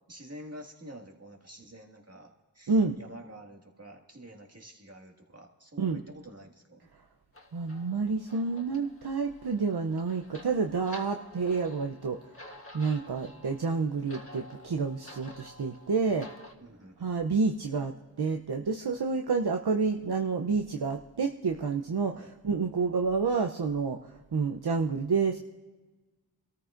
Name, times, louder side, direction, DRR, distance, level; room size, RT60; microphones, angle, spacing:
voice 1, 0.1-6.8 16.6-17.1 22.1-22.3 23.3-23.4, right 1 dB, 35° right, 1 dB, 1.9 m, -48 dB
voice 2, 2.7-3.0 5.8-6.0 7.5-12.2 12.7-16.3 17.0-25.4, right 4 dB, 65° right, 4 dB, 0.7 m, -29 dB
sound 1, 7.3-16.5, left 1 dB, 30° left, 1.5 m, -51 dB
25.5 x 13.5 x 2.5 m, 1.2 s
wide cardioid pair, 40°, 43 cm